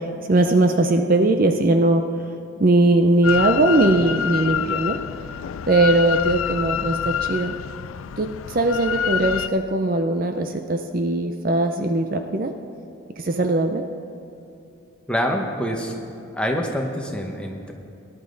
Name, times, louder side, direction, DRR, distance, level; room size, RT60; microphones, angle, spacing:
voice 1, 0.3-2.0 2.6-5.0 5.7-7.5 8.2-12.5 13.2-13.8, right 2 dB, 45° right, 6 dB, 0.6 m, -20 dB
Drill, 3.2-9.5, left 9 dB, 85° left, 0.4 m, -27 dB
voice 2, 15.1-16.0 16.3-17.7, equal, 5° left, 1 dB, 1.1 m, -25 dB
19.0 x 11.0 x 3.9 m, 2.8 s
head